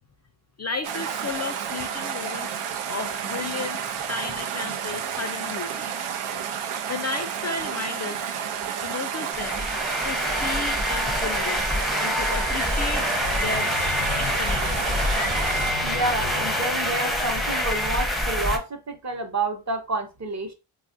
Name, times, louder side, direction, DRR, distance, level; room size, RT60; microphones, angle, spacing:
voice 1, 0.6-2.6 2.9-5.9 6.9-8.3 8.8-9.6 10.0-11.6 12.0-13.1 13.3-13.7 14.2-14.8 15.1-16.1, left 4 dB, 35° left, 0.4 m, -34 dB
sound 1, 0.8-15.7, right 8 dB, 80° right, 0.6 m, -31 dB
sound 2, 9.3-18.6, left 1 dB, ahead, 0.6 m, -26 dB
sound 3, 12.6-17.7, left 6 dB, 85° left, 0.6 m, -36 dB
voice 2, 15.8-20.5, right 2 dB, 35° right, 0.8 m, -29 dB
3.5 x 2.3 x 2.5 m
cardioid pair, 55°, 49 cm